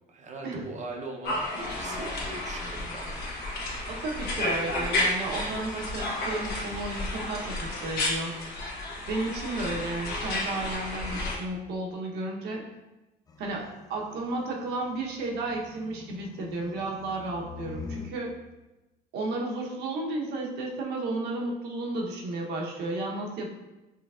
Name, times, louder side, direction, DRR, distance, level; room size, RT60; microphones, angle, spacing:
voice 1, 0.1-3.8, right 2 dB, 45° right, 2 dB, 0.6 m, -41 dB
sound 1, 1.2-11.4, left 2 dB, 70° left, 1.1 m, -32 dB
voice 2, 3.9-8.3 9.1-12.6 13.4-18.3 19.1-23.5, right 2 dB, 80° right, -1 dB, 0.9 m, -33 dB
sound 2, 13.3-18.1, left 4 dB, 20° left, 0.5 m, -45 dB
5.7 x 3.2 x 2.4 m, 1.0 s
cardioid pair, 110°, 17 cm